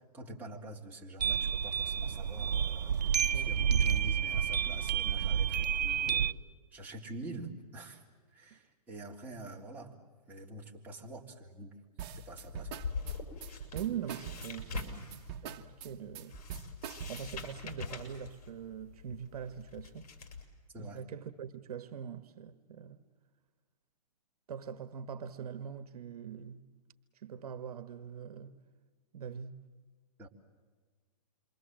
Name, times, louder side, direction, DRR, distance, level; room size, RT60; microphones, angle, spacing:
voice 1, 0.0-2.9 3.3-6.4 6.7-8.0 8.3-10.0 10.3-11.7 12.2-12.7 14.9-15.1 20.7-21.0 30.2-30.3, right 1 dB, 10° right, 3.6 m, -46 dB
sound 1, 1.2-6.3, right 8 dB, 85° right, 0.8 m, -30 dB
sound 2, 12.0-17.5, right 9 dB, 40° right, 1.6 m, -43 dB
sound 3, 12.1-20.4, left 5 dB, 65° left, 6.2 m, -44 dB
voice 2, 13.7-16.4 17.1-20.1 20.8-23.0 24.5-26.6 27.1-28.5 29.1-29.6, right 8 dB, 65° right, 1.4 m, -42 dB
28.0 x 24.0 x 7.7 m
hypercardioid pair, 140°, 20 cm